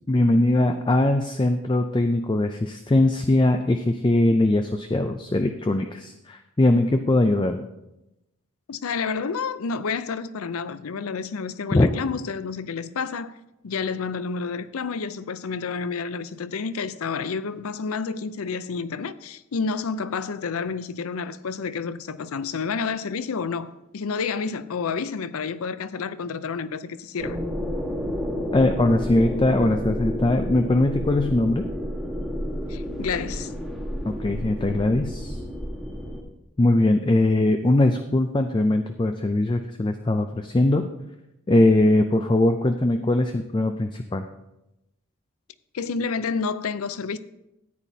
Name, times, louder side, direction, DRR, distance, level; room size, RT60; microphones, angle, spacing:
voice 1, 0.1-7.7 11.7-11.9 28.5-31.6 34.1-35.4 36.6-40.9 41.5-44.3, left 2 dB, 20° left, 0.4 m, -21 dB
voice 2, 8.7-13.3 13.6-27.4 32.7-33.5 45.7-47.2, left 5 dB, 90° left, 0.5 m, -29 dB
sound 1, 27.2-36.2, equal, ahead, 1.4 m, -30 dB
14.0 x 9.1 x 2.7 m
head